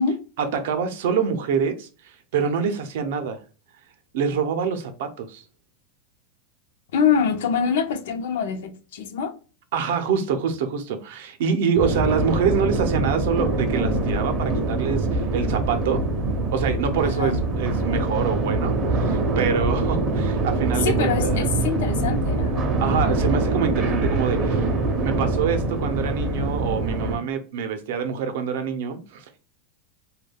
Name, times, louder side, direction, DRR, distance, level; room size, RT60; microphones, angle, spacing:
voice 1, 0.4-3.4 4.1-5.4 9.7-16.0 16.5-21.5 22.8-24.7 25.0-29.4, right 6 dB, 70° right, 0.5 m, -26 dB
voice 2, 6.9-9.3 17.0-17.4 20.8-22.7, left 6 dB, 80° left, 0.5 m, -24 dB
sound 1, 11.8-27.2, right 2 dB, 25° right, 0.5 m, -24 dB
2.2 x 2.2 x 3.3 m
supercardioid pair, 160°, 0 cm